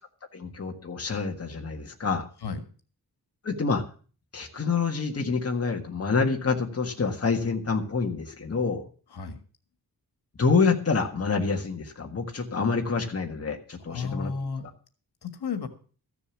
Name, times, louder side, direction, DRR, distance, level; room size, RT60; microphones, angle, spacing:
voice 1, 0.3-2.3 3.4-3.8 4.3-8.8 10.4-14.3, left 4 dB, 40° left, 3 dB, 1.6 m, -27 dB
voice 2, 13.8-14.6 15.2-15.7, left 5 dB, 90° left, 8 dB, 1.8 m, -33 dB
14.5 x 6.9 x 7.2 m, 0.40 s
wide cardioid pair, 165°, 38 cm